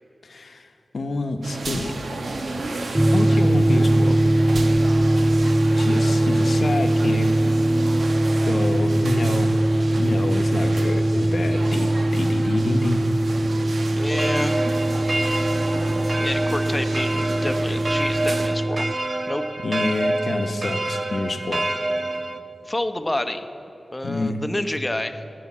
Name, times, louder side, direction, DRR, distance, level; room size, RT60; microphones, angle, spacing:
voice 1, 0.2-0.7 0.9-2.0 3.1-4.2 5.7-7.4 8.5-9.5 9.9-13.1 19.6-21.7 24.0-24.4, left 2 dB, 70° left, 7 dB, 0.9 m, -27 dB
sound 1, 1.4-18.5, right 2 dB, 80° right, 1.1 m, -33 dB
sound 2, 2.9-18.9, right 1 dB, 20° right, 0.3 m, -21 dB
voice 2, 13.9-14.6 16.2-18.9 19.3-19.5 22.7-23.5 23.9-25.2, left 1 dB, 20° left, 7 dB, 0.8 m, -28 dB
sound 3, 14.1-22.4, right 2 dB, 40° right, 0.7 m, -27 dB
17.5 x 6.5 x 8.5 m, 2.8 s
wide cardioid pair, 75°, 0 cm